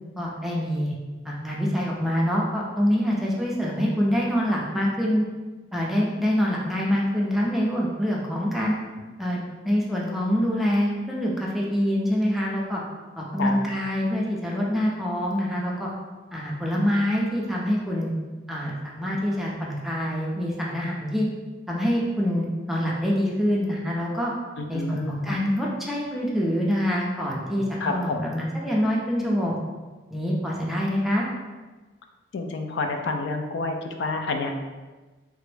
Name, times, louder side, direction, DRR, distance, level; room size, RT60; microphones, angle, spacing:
voice 1, 0.2-0.9 1.2-5.3 5.7-8.7 9.2-12.8 13.2-15.9 16.3-18.1 18.5-21.3 21.7-24.3 24.7-29.5 30.1-31.3, equal, ahead, -4 dB, 0.5 m, -25 dB
voice 2, 24.6-25.4 27.8-28.2 32.3-34.5, left 3 dB, 85° left, 4 dB, 0.3 m, -29 dB
3.4 x 2.0 x 3.2 m, 1.2 s
head